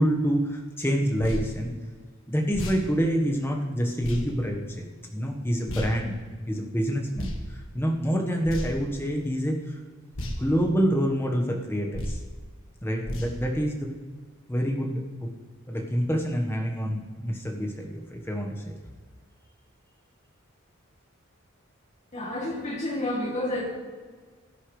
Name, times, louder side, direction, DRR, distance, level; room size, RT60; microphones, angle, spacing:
voice 1, 0.0-1.7 2.3-6.2 6.5-9.8 10.2-12.2 12.8-13.9 14.5-15.3 15.7-18.7, equal, 10° left, 1 dB, 1.3 m, -27 dB
sound 1, 1.2-1.4 2.5-2.8 4.0-4.2 5.7-5.9 7.1-7.4 8.4-8.9 10.1-10.4 11.9-12.2 13.0-13.3, left 1 dB, 65° left, 1.7 m, -33 dB
voice 2, 22.1-23.6, left 1 dB, 30° left, -2 dB, 2.7 m, -30 dB
16.5 x 9.8 x 3.3 m, 1.5 s
head